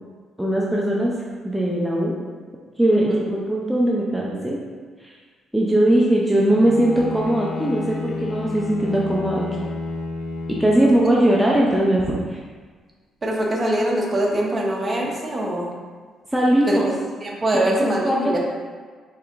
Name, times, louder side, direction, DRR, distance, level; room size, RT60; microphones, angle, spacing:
voice 1, 0.4-1.1 1.4-2.2 2.8-4.6 5.0-5.1 5.5-9.5 10.6-12.4 16.3-16.9 17.5-18.4, right 1 dB, 5° right, -4 dB, 0.5 m, -20 dB
voice 2, 2.9-3.2 13.2-15.7 16.7-18.4, right 1 dB, 30° right, -2 dB, 0.8 m, -23 dB
Bowed string instrument, 6.5-11.3, left 3 dB, 80° left, 0.4 m, -31 dB
4.6 x 3.4 x 2.5 m, 1.5 s
cardioid pair, 90°, 0 cm